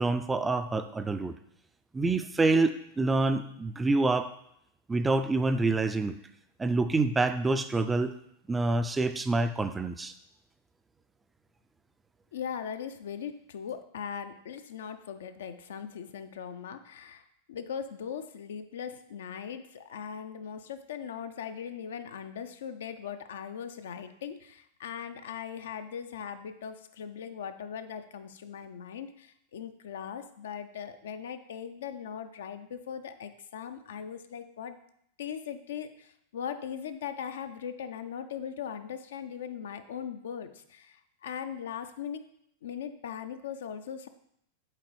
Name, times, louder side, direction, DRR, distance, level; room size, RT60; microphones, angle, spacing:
voice 1, 0.0-1.3 1.9-4.3 4.9-6.2 6.6-8.1 8.5-10.1, right 3 dB, 10° right, 10 dB, 0.3 m, -27 dB
voice 2, 12.3-34.8 35.2-42.2 42.6-44.1, left 8 dB, 60° left, 9 dB, 0.4 m, -39 dB
7.5 x 4.2 x 3.1 m, 0.73 s
figure-of-eight pair, 90°, 0 cm